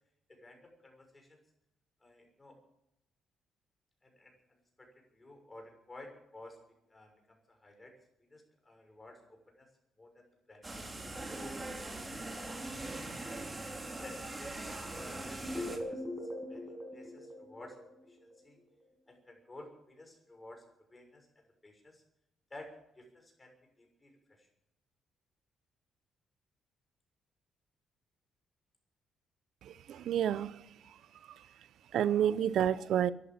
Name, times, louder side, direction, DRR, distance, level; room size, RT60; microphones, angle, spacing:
voice 1, 0.3-1.4 2.0-2.6 4.0-6.6 6.9-9.7 10.0-10.6 11.2-13.0 13.2-13.5 14.0-14.6 14.8-16.2 16.5-17.8 18.1-18.6 19.1-20.6 20.9-22.0 22.5-23.5 23.8-24.5, left 2 dB, 20° left, 3 dB, 6.4 m, -54 dB
sound 1, 10.6-15.8, right 2 dB, 20° right, 3.5 m, -41 dB
sound 2, 15.4-18.4, left 1 dB, 5° right, 6.9 m, -41 dB
voice 2, 29.6-31.0 31.2-31.5 31.9-33.1, right 10 dB, 75° right, 16 dB, 0.6 m, -30 dB
13.0 x 11.0 x 9.1 m, 0.81 s
cardioid pair, 90°, 0 cm